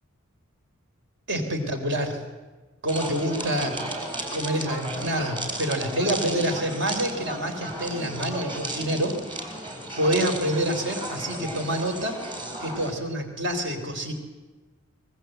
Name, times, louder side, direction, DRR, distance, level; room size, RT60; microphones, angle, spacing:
voice 1, 1.3-2.2 2.8-3.8 4.3-9.4 10.0-12.2 12.6-14.1, right 1 dB, 55° right, 5 dB, 3.7 m, -27 dB
sound 1, 2.9-12.9, right 1 dB, 20° right, 4.2 m, -34 dB
24.5 x 22.0 x 7.9 m, 1.2 s
head